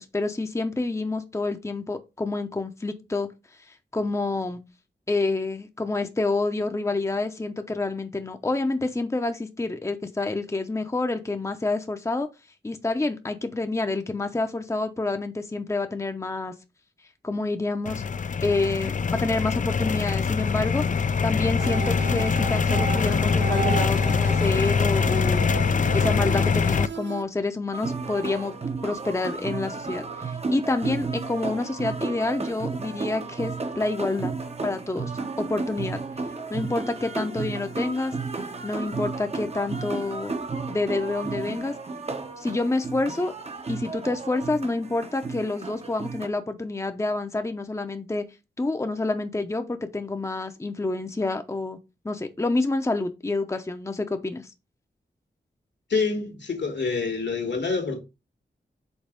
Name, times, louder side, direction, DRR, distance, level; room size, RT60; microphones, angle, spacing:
voice 1, 0.0-3.3 3.7-4.6 5.1-12.3 12.6-16.5 17.2-18.0 18.4-20.8 21.2-25.5 25.9-28.5 28.8-34.3 34.6-35.1 35.4-36.0 36.5-38.1 38.6-40.3 40.7-41.7 42.4-43.3 43.7-48.2 48.6-51.8 52.0-54.5, left 2 dB, 15° left, 0.7 m, -28 dB
sound 1, 17.9-26.9, left 5 dB, 45° left, 0.4 m, -23 dB
sound 2, 21.6-27.2, right 9 dB, 75° right, 0.7 m, -34 dB
sound 3, 27.7-46.3, right 4 dB, 35° right, 0.8 m, -33 dB
voice 2, 55.9-58.0, left 4 dB, 75° left, 1.7 m, -26 dB
5.4 x 4.0 x 5.1 m
wide cardioid pair, 100°, 18 cm